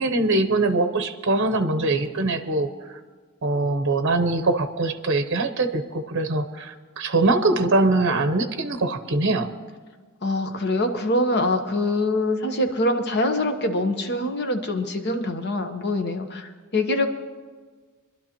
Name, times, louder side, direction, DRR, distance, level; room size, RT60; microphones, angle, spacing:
voice 1, 0.0-3.0 3.4-9.5, right 2 dB, 55° right, 8 dB, 0.8 m, -23 dB
voice 2, 10.2-17.1, left 1 dB, 50° left, 6 dB, 1.1 m, -24 dB
23.5 x 11.5 x 3.0 m, 1.4 s
head